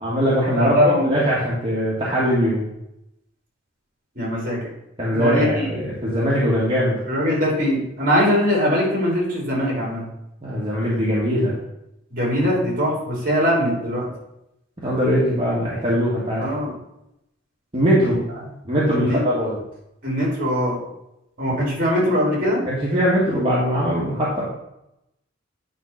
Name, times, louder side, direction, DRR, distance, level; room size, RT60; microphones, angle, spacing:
voice 1, 0.0-2.7 5.0-7.0 10.4-11.5 14.8-16.5 17.7-19.6 22.6-24.5, equal, 30° right, -7 dB, 1.7 m, -21 dB
voice 2, 0.6-1.1 4.1-4.6 5.1-5.7 7.1-10.0 12.1-14.1 16.4-16.7 18.9-19.2 20.0-20.8 21.4-22.6, equal, 50° right, -3 dB, 3.3 m, -21 dB
9.3 x 3.6 x 5.8 m, 0.84 s
head